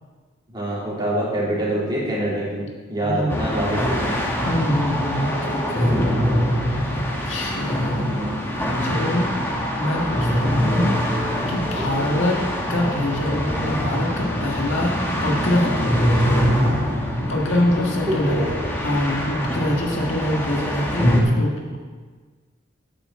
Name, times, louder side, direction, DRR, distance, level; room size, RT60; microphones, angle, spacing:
voice 1, 0.5-2.6 2.9-4.0 5.9-6.2 8.0-8.3 10.5-10.8 11.8-12.1 17.7-18.6 19.9-20.0, right 1 dB, 25° right, -7 dB, 3.3 m, -26 dB
voice 2, 3.0-3.4 4.4-6.0 6.9-8.5 8.8-9.3 9.8-11.0 11.5-12.4 12.7-16.4 17.3-18.5 18.8-21.8, left 1 dB, 85° left, -1 dB, 1.7 m, -24 dB
sound 1, 3.3-21.2, equal, 10° left, 1.3 m, -24 dB
8.7 x 6.0 x 7.3 m, 1.4 s
head